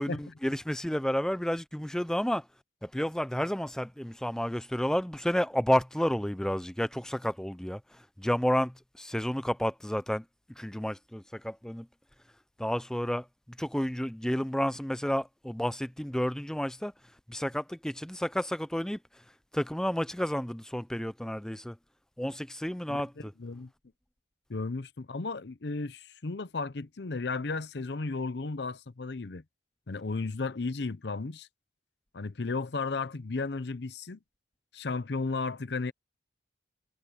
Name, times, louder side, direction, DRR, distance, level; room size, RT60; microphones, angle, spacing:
voice 1, 0.0-2.5 2.8-11.9 12.6-21.8 22.2-23.3, equal, 5° left, 0.5 m, -31 dB
voice 2, 24.5-29.4 29.9-31.5 32.1-34.2 34.7-35.9, left 3 dB, 65° left, 0.7 m, -34 dB
head